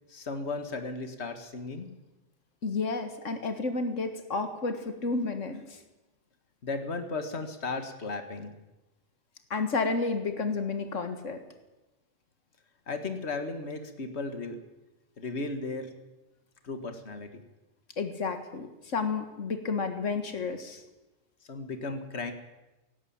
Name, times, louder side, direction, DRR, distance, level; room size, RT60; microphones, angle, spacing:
voice 1, 0.1-1.9 6.6-8.5 12.9-14.6 15.2-15.9 16.6-17.4 21.5-22.3, left 3 dB, 60° left, 7 dB, 2.0 m, -35 dB
voice 2, 2.6-5.8 9.5-11.4 18.0-20.8, left 4 dB, 90° left, 7 dB, 2.0 m, -31 dB
17.5 x 17.0 x 8.8 m, 1.0 s
omnidirectional pair, 1.2 m